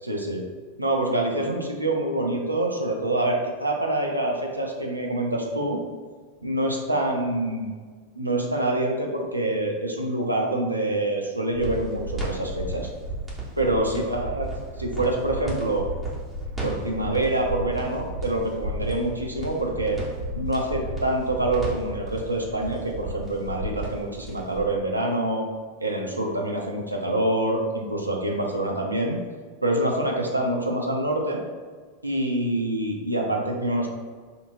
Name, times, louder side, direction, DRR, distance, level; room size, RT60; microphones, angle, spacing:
voice 1, 0.0-0.4 0.8-5.8 6.4-7.7 8.2-12.9 13.6-14.5 14.8-15.9 16.6-20.0 20.3-25.5 25.8-29.2 29.6-31.4 32.0-33.9, right 1 dB, 85° right, 1 dB, 0.6 m, -26 dB
sound 1, 11.5-24.7, right 1 dB, 15° right, 1.3 m, -33 dB
5.2 x 2.8 x 2.6 m, 1.5 s
figure-of-eight pair, 90°, 0 cm